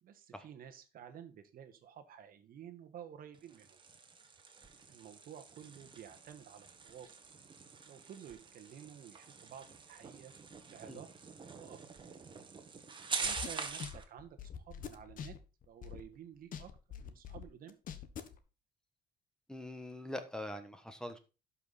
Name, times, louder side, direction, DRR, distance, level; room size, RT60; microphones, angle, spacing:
voice 1, 0.0-3.8 4.9-7.2 7.9-10.3 10.6-11.1 11.6-11.8 13.2-15.4 15.6-16.7 17.0-17.7, right 9 dB, 60° right, 7 dB, 1.5 m, -52 dB
sound 1, 3.3-14.0, right 5 dB, 30° right, 1.7 m, -45 dB
sound 2, 13.2-16.2 16.5-18.4, left 8 dB, 55° left, 1.3 m, -45 dB
voice 2, 19.5-21.2, left 1 dB, 5° left, 9 dB, 1.3 m, -43 dB
11.5 x 5.8 x 4.1 m, 0.30 s
cardioid pair, 110°, 17 cm